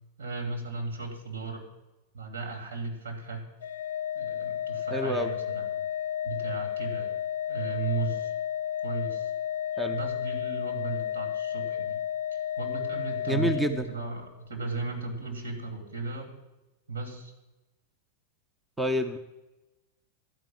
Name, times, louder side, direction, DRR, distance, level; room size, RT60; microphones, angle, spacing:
voice 1, 0.2-1.6 2.1-3.4 4.1-5.9 6.2-7.1 7.5-8.3 8.8-9.3 9.9-12.0 12.3-16.3 16.9-17.3, right 3 dB, 70° right, 2 dB, 2.7 m, -36 dB
Organ, 3.6-14.3, left 10 dB, 60° left, 0.4 m, -32 dB
voice 2, 4.9-5.3 9.8-10.0 13.3-13.9 18.8-19.2, equal, 10° right, 7 dB, 0.7 m, -28 dB
12.5 x 5.4 x 8.5 m, 1.0 s
figure-of-eight pair, 90°, 0 cm